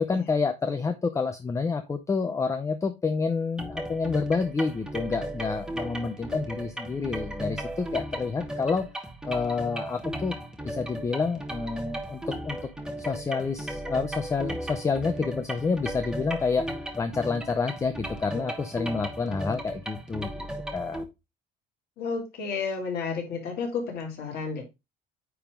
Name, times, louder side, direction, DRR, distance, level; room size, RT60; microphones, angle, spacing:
voice 1, 0.0-8.8 9.2-10.3 10.6-12.6 13.1-16.7 17.0-20.5 20.7-21.0, left 4 dB, 15° left, 0.6 m, -28 dB
sound 1, 3.6-21.0, right 1 dB, 5° right, 1.2 m, -36 dB
voice 2, 22.0-24.6, left 5 dB, 55° left, 2.9 m, -31 dB
9.3 x 3.6 x 3.7 m
cardioid pair, 145°, 19 cm